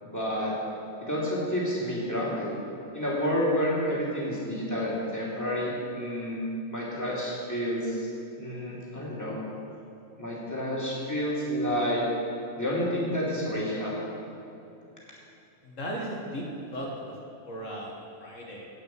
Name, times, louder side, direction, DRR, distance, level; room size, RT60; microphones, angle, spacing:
voice 1, 0.0-0.5 1.0-2.5 2.9-6.4 6.7-8.1 8.4-9.5 10.2-12.1 12.6-14.0, equal, 15° left, -6 dB, 3.0 m, -29 dB
voice 2, 15.6-16.4 16.7-17.1 17.4-17.9 18.2-18.7, equal, 70° left, -3 dB, 2.1 m, -36 dB
17.5 x 5.9 x 7.8 m, 2.8 s
omnidirectional pair, 1.4 m